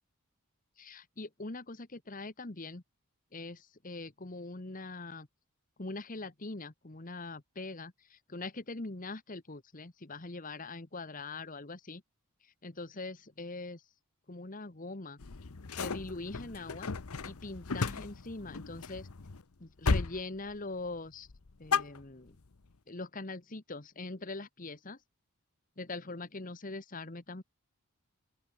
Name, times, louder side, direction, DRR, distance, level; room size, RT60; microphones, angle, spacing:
voice 1, 0.8-2.8 3.3-5.3 5.8-12.0 12.6-13.8 14.3-15.2 15.8-16.9 17.2-19.1 19.6-21.3 21.6-22.4 22.9-25.0 25.8-27.4, left 3 dB, 35° left, 1.3 m, -42 dB
sound 1, 15.2-19.4 19.8-20.2 20.5-21.0 21.3-22.5, left 4 dB, 75° left, 0.9 m, -35 dB
open air
head